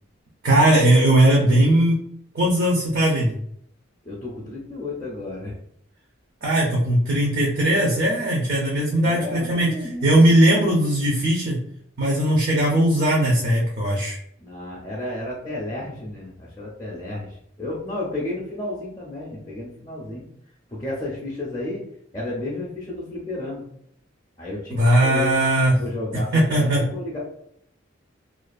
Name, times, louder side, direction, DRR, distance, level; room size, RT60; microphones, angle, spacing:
voice 1, 0.4-2.0 2.3-3.3 6.4-11.6 12.0-14.2 24.7-25.8 26.3-26.8, right 1 dB, 50° right, -2 dB, 0.5 m, -19 dB
voice 2, 4.0-5.5 8.9-10.2 14.4-17.3 17.6-20.2 20.7-21.8 22.1-23.6 24.4-25.3 25.7-27.2, left 1 dB, 20° left, -6 dB, 0.5 m, -32 dB
2.5 x 2.3 x 2.3 m, 0.68 s
head